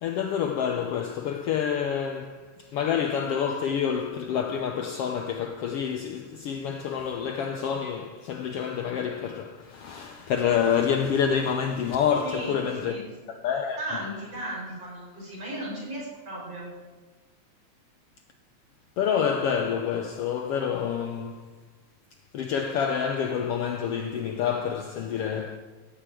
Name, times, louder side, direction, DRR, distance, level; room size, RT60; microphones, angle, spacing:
voice 1, 0.0-13.0 13.3-14.1 19.0-21.5 22.3-25.6, left 7 dB, 75° left, 1.4 m, -28 dB
voice 2, 12.2-13.3 13.8-16.7, right 1 dB, 55° right, 6.0 m, -36 dB
15.0 x 5.9 x 9.0 m
omnidirectional pair, 3.3 m